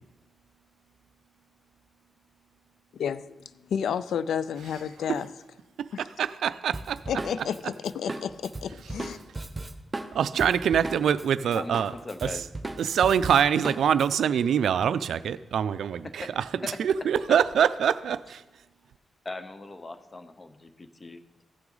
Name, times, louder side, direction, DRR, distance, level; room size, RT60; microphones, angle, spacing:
voice 1, 2.9-3.4 3.7-5.3 5.9-6.0 7.1-9.2, left 8 dB, 85° left, 15 dB, 0.3 m, -31 dB
voice 2, 5.8-7.0 7.4-7.5 10.1-11.9 12.2-12.4 12.8-16.5 16.8-18.4, right 8 dB, 85° right, 15 dB, 0.3 m, -24 dB
Drum kit, 6.7-11.2 11.5-14.1, right 2 dB, 25° right, 0.7 m, -36 dB
voice 3, 11.6-12.4 16.2-16.3 16.6-16.8 19.2-21.4, left 2 dB, 30° left, 10 dB, 0.7 m, -39 dB
15.0 x 6.0 x 3.9 m, 1.1 s
cardioid pair, 105°, 0 cm